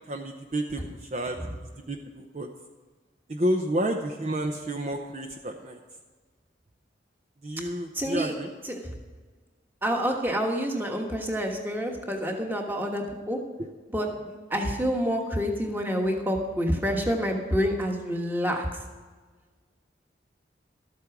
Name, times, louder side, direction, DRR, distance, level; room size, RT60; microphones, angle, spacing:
voice 1, 0.1-1.4 1.9-2.5 3.3-5.8 7.4-8.5, right 1 dB, 40° right, 3 dB, 0.7 m, -30 dB
voice 2, 7.9-8.3 8.6-8.8 9.8-13.4 13.9-14.1 14.5-18.8, equal, 10° right, 2 dB, 1.4 m, -28 dB
13.0 x 8.5 x 6.0 m, 1.4 s
head